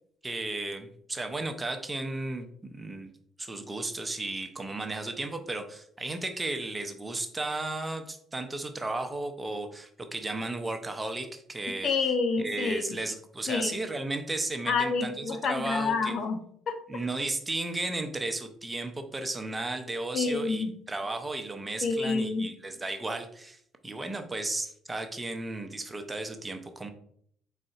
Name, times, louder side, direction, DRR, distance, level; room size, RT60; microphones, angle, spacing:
voice 1, 0.2-3.1 3.4-11.9 12.4-16.1 16.9-26.9, right 2 dB, 20° right, 6 dB, 0.6 m, -34 dB
voice 2, 11.8-13.0 13.5-13.8 14.7-16.8 20.1-20.7 21.8-22.5, left 4 dB, 55° left, 7 dB, 0.5 m, -28 dB
4.2 x 3.8 x 2.4 m, 0.65 s
hypercardioid pair, 50°, 0 cm